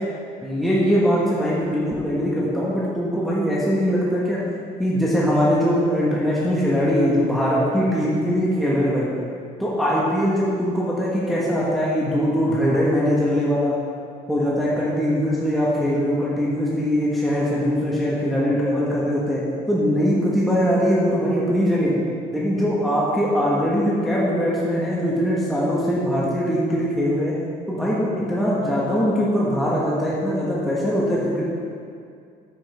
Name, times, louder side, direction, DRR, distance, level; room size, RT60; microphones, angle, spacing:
voice 1, 0.4-4.4 4.8-9.1 9.6-13.7 14.3-19.4 19.7-21.9 22.3-27.4 27.7-31.4, equal, ahead, -7 dB, 1.7 m, -21 dB
9.6 x 8.0 x 3.6 m, 2.3 s
cardioid pair, 110°, 17 cm